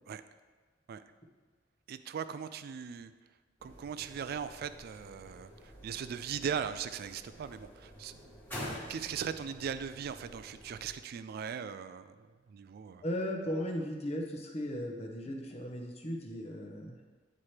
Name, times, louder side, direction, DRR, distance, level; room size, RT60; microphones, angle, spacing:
voice 1, 1.9-3.1 3.6-8.3 8.9-13.0, right 7 dB, 55° right, 12 dB, 0.3 m, -39 dB
sound 1, 3.6-10.9, equal, 10° left, 1.4 m, -48 dB
voice 2, 13.0-17.0, equal, 35° left, 2 dB, 0.8 m, -36 dB
9.4 x 4.3 x 3.2 m, 1.4 s
head